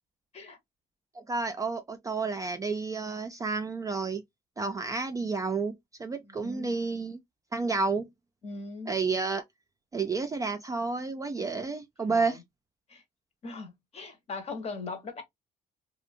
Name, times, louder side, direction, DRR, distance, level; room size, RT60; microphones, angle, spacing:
voice 1, 1.1-4.2 4.6-7.2 7.5-8.1 8.9-9.4 9.9-12.4, right 4 dB, 20° right, 0.3 m, -30 dB
voice 2, 6.2-6.7 8.4-8.9 12.1-12.4 12.9-13.0 13.4-15.2, left 3 dB, 40° left, 0.8 m, -40 dB
2.6 x 2.0 x 2.5 m
cardioid pair, 110°, 17 cm